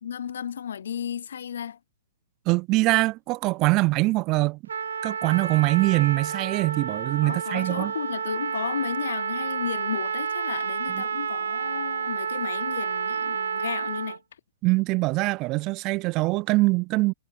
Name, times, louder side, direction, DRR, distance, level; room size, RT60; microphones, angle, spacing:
voice 1, 0.0-1.8 7.2-14.2, left 8 dB, 75° left, 0.4 m, -33 dB
voice 2, 2.5-4.6 5.0-7.9 10.9-11.0 14.6-17.1, right 22 dB, 30° right, 0.3 m, -23 dB
Trumpet, 4.7-14.2, right 7 dB, 85° right, 0.5 m, -30 dB
hypercardioid pair, 150°, 0 cm